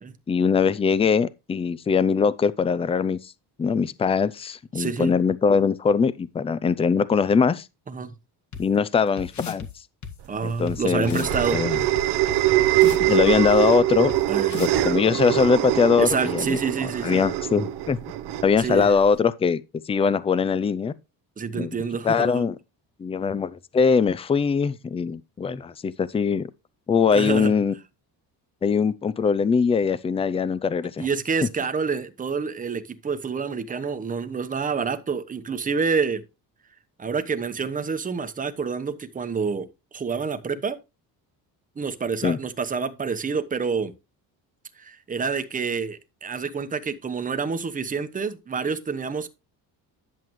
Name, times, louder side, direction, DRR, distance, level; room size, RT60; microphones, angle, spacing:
voice 1, 0.3-3.3 3.6-7.7 8.6-9.7 10.4-11.8 12.9-14.1 14.6-16.6 17.0-18.0 18.4-19.6 19.9-20.9 21.5-21.7 22.0-22.6 23.0-26.5 26.9-27.7 28.6-31.1 42.2-42.4, left 6 dB, 15° left, 0.4 m, -22 dB
voice 2, 4.7-5.2 7.9-8.1 10.3-11.6 14.3-14.7 16.0-17.2 18.6-18.9 21.4-22.4 27.1-27.5 31.0-36.2 37.0-40.8 41.8-43.9 44.8-49.3, right 5 dB, 20° right, 1.0 m, -28 dB
sound 1, 8.5-8.6 9.2-9.7 10.0-10.1 10.7-10.8 11.0-11.4 11.7-13.1 13.5-13.6 14.1-14.2 14.5-14.8, left 7 dB, 45° left, 1.7 m, -35 dB
sound 2, 10.3-19.2, right 14 dB, 80° right, 1.0 m, -23 dB
11.0 x 7.5 x 3.1 m
cardioid pair, 150°, 39 cm